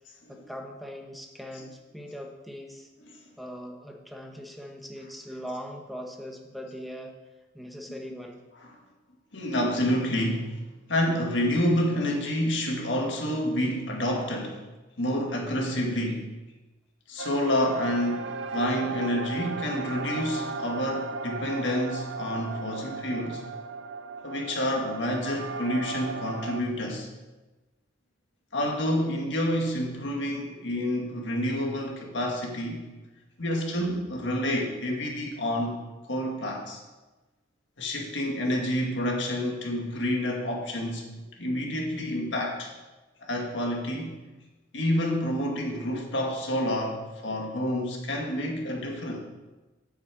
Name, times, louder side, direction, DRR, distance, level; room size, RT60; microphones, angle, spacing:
voice 1, 0.3-2.9 3.4-7.1 7.5-8.4, equal, ahead, 1 dB, 1.1 m, -40 dB
voice 2, 9.3-10.6 10.9-14.6 15.0-16.3 17.1-23.4 24.2-27.1 28.5-32.8 33.4-35.8 36.0-36.8 37.8-42.7 43.2-44.2 44.7-49.2, equal, 70° left, 0 dB, 1.9 m, -28 dB
sound 1, 17.2-26.6, right 4 dB, 70° right, 0.5 m, -36 dB
8.4 x 6.6 x 7.6 m, 1.1 s
head